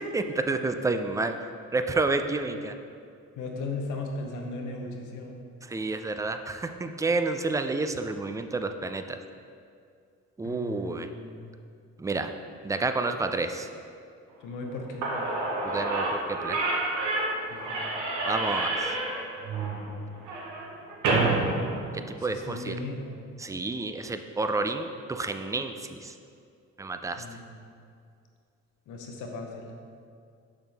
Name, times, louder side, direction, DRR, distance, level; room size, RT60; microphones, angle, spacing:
voice 1, 0.1-1.3 1.7-2.7 5.7-9.2 10.4-11.1 12.0-12.3 12.6-13.7 15.6-16.6 18.3-18.9 22.2-22.7 23.4-25.7 26.0-26.1 26.8-27.2, right 3 dB, 10° right, 7 dB, 0.3 m, -29 dB
voice 2, 3.4-5.4 10.4-11.5 14.4-15.3 17.5-17.9 22.2-23.2 27.2-27.7 28.9-29.7, left 2 dB, 85° left, 2 dB, 1.0 m, -37 dB
Slam / Squeak, 14.7-14.8 15.0-22.5, right 2 dB, 80° right, 1.2 m, -29 dB
6.7 x 5.9 x 3.5 m, 2.3 s
cardioid pair, 90°, 30 cm